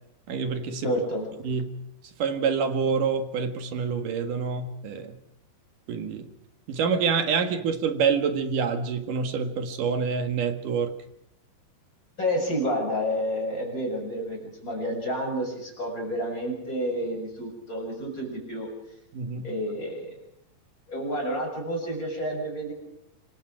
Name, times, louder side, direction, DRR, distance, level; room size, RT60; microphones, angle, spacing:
voice 1, 0.3-0.9 1.4-1.7 2.2-5.2 5.9-6.3 6.7-10.9 19.1-19.5, right 6 dB, 60° right, 7 dB, 3.0 m, -27 dB
voice 2, 0.8-1.3 12.2-18.7 19.4-20.1 20.9-22.7, equal, 20° left, 1 dB, 7.4 m, -29 dB
26.5 x 23.5 x 5.0 m, 0.80 s
omnidirectional pair, 4.5 m